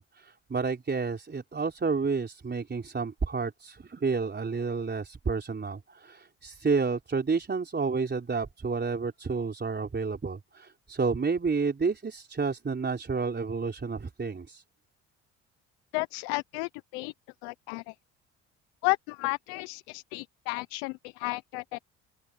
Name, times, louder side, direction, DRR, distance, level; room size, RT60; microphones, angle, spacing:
voice 1, 0.0-14.6, right 4 dB, 30° right, 4.3 m, -30 dB
voice 2, 15.9-17.1 17.4-17.9 18.8-21.8, left 26 dB, 85° left, 0.7 m, -33 dB
open air
hypercardioid pair, 60°, 33 cm